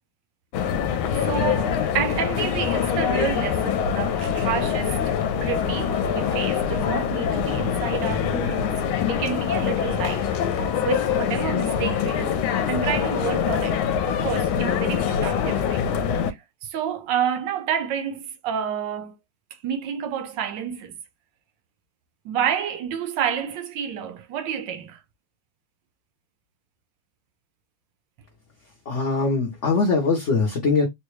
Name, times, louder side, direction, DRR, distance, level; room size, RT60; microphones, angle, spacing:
sound 1, 0.5-16.3, left 8 dB, 75° left, 1.4 m, -24 dB
voice 1, 1.2-5.0 5.4-8.7 9.1-10.3 10.6-15.8 16.3-19.2 19.6-21.0 22.2-25.0, right 8 dB, 70° right, 1.1 m, -29 dB
voice 2, 28.9-30.9, left 4 dB, 60° left, 0.8 m, -22 dB
3.9 x 2.2 x 3.0 m
omnidirectional pair, 2.4 m